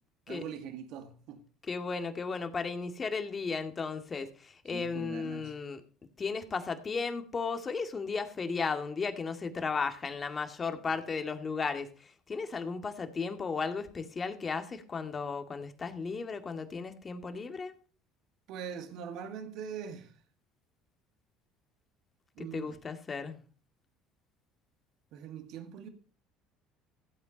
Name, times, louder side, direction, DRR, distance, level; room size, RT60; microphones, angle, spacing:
voice 1, 0.3-1.4 4.7-5.5 18.5-20.2 22.4-22.8 25.1-25.9, right 7 dB, 65° right, 1.8 m, -42 dB
voice 2, 1.7-5.8 6.2-17.7 22.4-23.4, left 5 dB, 30° left, 2.0 m, -35 dB
15.5 x 8.3 x 5.2 m
hypercardioid pair, 70°, 0 cm